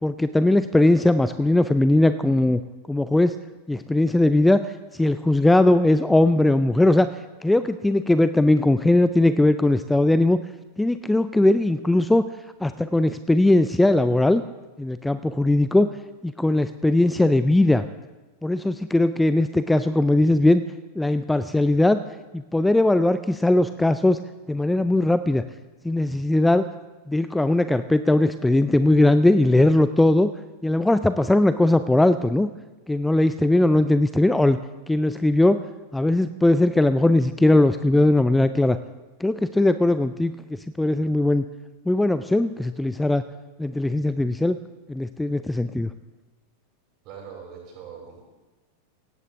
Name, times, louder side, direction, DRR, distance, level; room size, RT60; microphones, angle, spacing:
voice 1, 0.0-2.6 2.9-3.4 3.7-10.4 10.8-12.3 12.6-14.4 14.8-15.9 16.2-17.8 18.4-20.6 21.0-22.0 22.3-24.2 24.5-25.4 25.8-26.6 27.1-30.3 30.6-32.5 32.9-34.6 34.9-35.6 35.9-38.8 39.2-41.4 41.9-43.2 43.6-44.6 44.9-45.9, left 1 dB, 5° left, 13 dB, 0.4 m, -19 dB
voice 2, 47.0-48.2, right 7 dB, 40° right, -3 dB, 6.6 m, -41 dB
17.5 x 16.5 x 3.6 m, 1.2 s
figure-of-eight pair, 90°, 0 cm